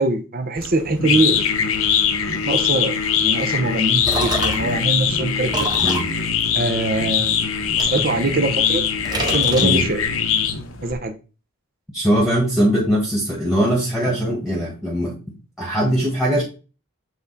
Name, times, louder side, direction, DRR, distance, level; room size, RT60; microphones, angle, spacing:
voice 1, 0.0-1.4 2.4-5.7 6.5-7.3 7.8-8.8 9.2-10.0 10.8-11.2, right 2 dB, 40° right, 0.8 m, -22 dB
sound 1, 0.6-10.9, left 7 dB, 70° left, 0.9 m, -22 dB
sound 2, 3.7-4.8 5.5-7.2 7.8-8.7 9.0-10.2, right 2 dB, 20° right, 1.3 m, -28 dB
voice 2, 11.9-15.1 15.6-16.4, equal, ahead, 1.4 m, -20 dB
7.8 x 3.6 x 4.0 m
head